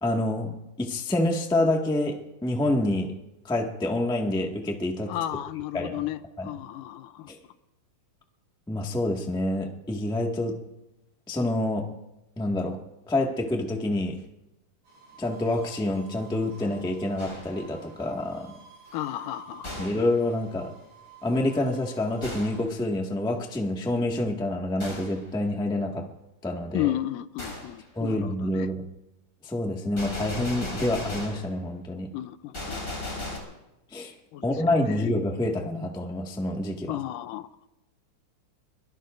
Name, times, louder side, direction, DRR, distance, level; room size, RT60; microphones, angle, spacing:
voice 1, 0.0-0.5 0.8-3.1 3.4-5.1 5.7-6.0 6.4-6.5 7.3-7.4 8.7-10.6 11.3-11.9 12.4-12.8 13.1-14.1 15.2-18.6 19.8-20.7 21.2-26.0 26.4-26.9 27.9-28.8 29.4-32.1 33.9-34.1 34.4-36.9, left 1 dB, 5° left, 1 dB, 0.7 m, -27 dB
voice 2, 5.1-7.3 18.9-19.7 26.7-28.7 32.1-32.8 34.3-34.5 34.8-35.0 36.9-37.5, left 13 dB, 85° left, 12 dB, 2.3 m, -33 dB
sound 1, 14.8-22.6, right 6 dB, 80° right, 8.7 m, -51 dB
Gunshot gunfire, 17.2-17.7 19.6-20.2 22.2-22.7 24.8-25.2 27.4-27.7 30.0-31.5 32.5-33.4, left 2 dB, 25° left, 5.0 m, -36 dB
24.0 x 22.5 x 2.6 m, 0.96 s
omnidirectional pair, 3.7 m